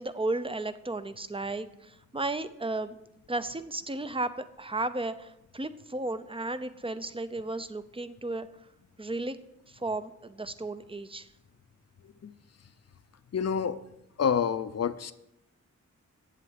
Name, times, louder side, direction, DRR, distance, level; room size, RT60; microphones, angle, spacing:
voice 1, 0.0-3.0 3.3-8.5 9.0-9.4 9.7-11.3, right 2 dB, 20° right, 12 dB, 0.6 m, -34 dB
voice 2, 13.3-13.8 14.2-15.1, left 7 dB, 55° left, 13 dB, 0.6 m, -28 dB
8.8 x 7.6 x 8.0 m, 0.86 s
wide cardioid pair, 115°, 30 cm